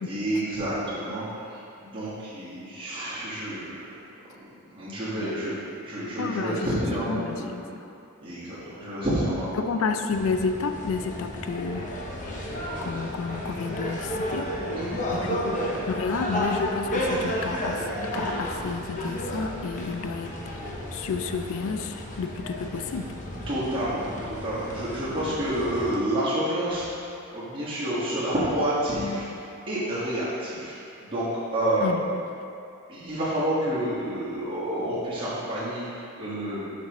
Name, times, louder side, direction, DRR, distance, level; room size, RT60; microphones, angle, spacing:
voice 1, 0.0-3.7 4.7-7.5 8.2-9.6 14.7-15.5 23.5-27.0 27.3-29.2 29.7-31.3 31.5-31.9 32.9-36.7, right 1 dB, 25° right, -12 dB, 1.5 m, -29 dB
voice 2, 5.1-5.5 6.2-7.9 9.6-12.1 12.4-14.5 15.1-15.4 15.9-17.9 18.1-23.1 31.8-32.2, left 4 dB, 65° left, 7 dB, 0.4 m, -31 dB
sound 1, 10.1-26.0, equal, 35° left, 0.7 m, -32 dB
6.5 x 5.2 x 3.0 m, 2.5 s
head